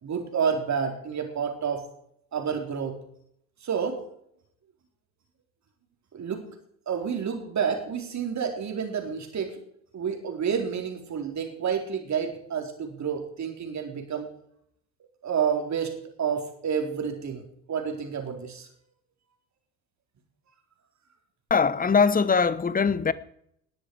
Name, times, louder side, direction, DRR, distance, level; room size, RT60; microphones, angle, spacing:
voice 1, 0.0-1.8 2.3-2.9 3.6-4.0 6.1-6.5 6.9-9.6 9.9-14.3 15.2-18.7, right 7 dB, 40° right, 4.1 m, -29 dB
voice 2, 21.5-23.1, left 5 dB, 20° left, 1.0 m, -21 dB
19.0 x 12.5 x 4.9 m
figure-of-eight pair, 60°, 44 cm